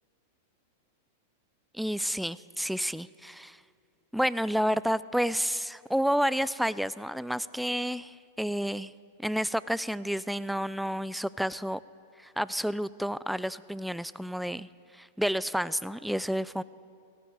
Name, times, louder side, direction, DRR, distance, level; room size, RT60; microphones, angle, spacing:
voice 1, 1.7-3.6 4.1-8.9 9.2-11.8 12.2-14.7 14.9-16.6, equal, ahead, 18 dB, 0.3 m, -30 dB
18.0 x 16.0 x 4.7 m, 2.4 s
hypercardioid pair, 120°, 0 cm